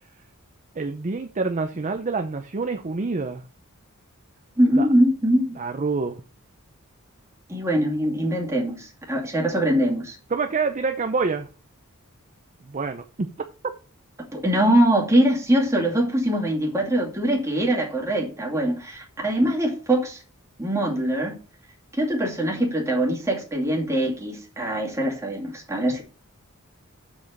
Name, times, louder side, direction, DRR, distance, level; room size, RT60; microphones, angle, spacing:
voice 1, 0.8-3.4 4.8-4.9 5.6-6.2 10.3-11.5 12.6-13.3 18.5-18.6, right 4 dB, 35° right, 0.6 m, -27 dB
voice 2, 4.6-5.6 7.5-10.2 14.3-20.2 20.6-21.3 21.9-26.0, right 1 dB, 15° right, 2.4 m, -22 dB
7.3 x 5.0 x 6.0 m
head